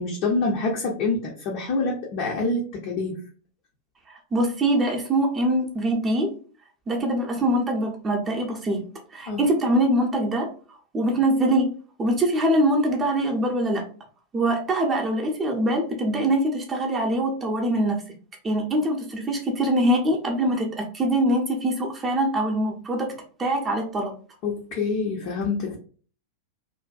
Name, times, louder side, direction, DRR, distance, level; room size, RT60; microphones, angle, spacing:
voice 1, 0.0-3.2 9.3-9.4 24.4-25.8, left 3 dB, 45° left, -1 dB, 0.5 m, -26 dB
voice 2, 4.1-6.3 6.9-8.8 9.1-10.5 10.9-11.7 12.0-13.9 14.3-18.0 18.4-23.1 23.4-24.1, right 1 dB, 20° right, 1 dB, 0.6 m, -23 dB
2.5 x 2.2 x 2.4 m, 0.39 s
figure-of-eight pair, 90°, 0 cm